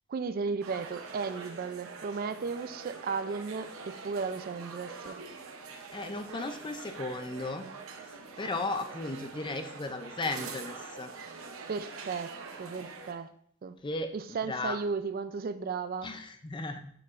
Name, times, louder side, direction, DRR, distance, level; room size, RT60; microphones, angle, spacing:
voice 1, 0.1-5.2 11.7-13.3 13.6-13.8 14.1-16.1, right 5 dB, 45° right, 0.3 m, -35 dB
sound 1, 0.6-13.1, right 4 dB, 85° right, 0.7 m, -44 dB
voice 2, 5.9-7.7 8.4-11.1 13.8-14.1 14.4-14.8 16.0-16.9, left 2 dB, 25° left, 0.4 m, -35 dB
6.8 x 5.8 x 2.5 m
head